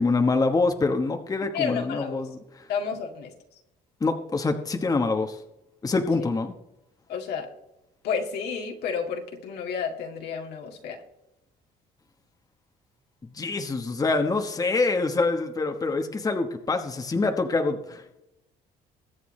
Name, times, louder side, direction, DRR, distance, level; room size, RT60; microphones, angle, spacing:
voice 1, 0.0-2.4 4.0-5.4 5.8-6.5 13.3-18.2, left 3 dB, 20° left, 5 dB, 1.2 m, -25 dB
voice 2, 1.5-2.2 2.7-3.3 7.1-7.5 8.0-11.0, left 6 dB, 75° left, 2 dB, 2.1 m, -31 dB
22.0 x 8.2 x 3.2 m, 0.88 s
cardioid pair, 110°, 17 cm